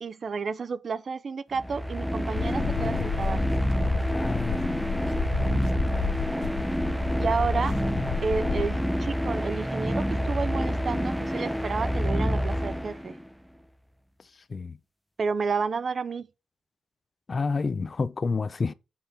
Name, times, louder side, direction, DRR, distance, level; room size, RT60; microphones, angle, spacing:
voice 1, 0.0-3.6 7.2-7.8 8.2-13.2 15.2-16.3, right 5 dB, 50° right, 0.5 m, -31 dB
sound 1, 1.5-13.3, equal, ahead, 0.6 m, -28 dB
sound 2, 2.3-8.8, left 6 dB, 75° left, 0.8 m, -32 dB
voice 2, 4.1-5.2 14.5-14.8 17.3-18.7, left 4 dB, 40° left, 0.5 m, -30 dB
7.4 x 4.2 x 4.6 m
cardioid pair, 90°, 0 cm